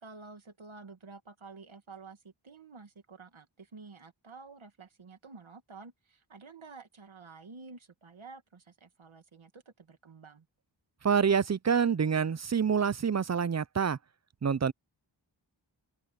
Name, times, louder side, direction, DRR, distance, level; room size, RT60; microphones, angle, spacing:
voice 1, 0.0-10.5, right 4 dB, 90° right, 2.0 m, -50 dB
voice 2, 11.0-14.0 14.4-14.7, right 6 dB, 35° right, 0.5 m, -27 dB
open air
wide cardioid pair, 60°, 46 cm